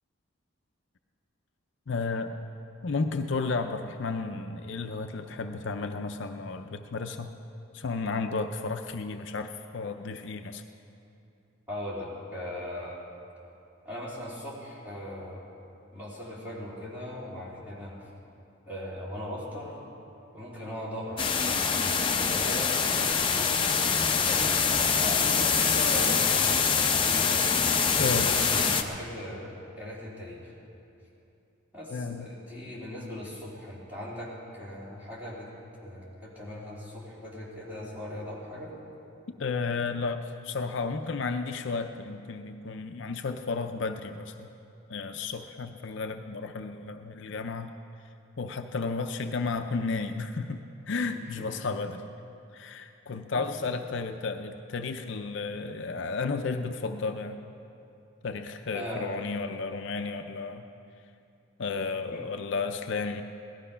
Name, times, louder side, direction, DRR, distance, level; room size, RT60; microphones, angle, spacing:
voice 1, 1.9-2.4 2.8-7.3 7.7-10.6 28.0-28.3 31.9-32.3 39.4-44.5 44.9-47.7 48.4-52.0 52.5-57.4 58.2-60.6 61.6-63.2, left 4 dB, 60° left, 6 dB, 0.5 m, -33 dB
voice 2, 11.7-13.0 13.8-15.4 15.9-18.1 18.7-19.8 20.3-23.8 24.0-24.7 25.0-27.4 27.9-30.5 31.7-35.5 35.8-38.7 51.4-51.5 53.3-53.6 58.7-59.1 62.1-62.3, left 1 dB, 10° right, -8 dB, 3.4 m, -39 dB
sound 1, 21.2-28.8, left 6 dB, 25° left, 0.7 m, -24 dB
17.5 x 12.5 x 5.6 m, 2.7 s
head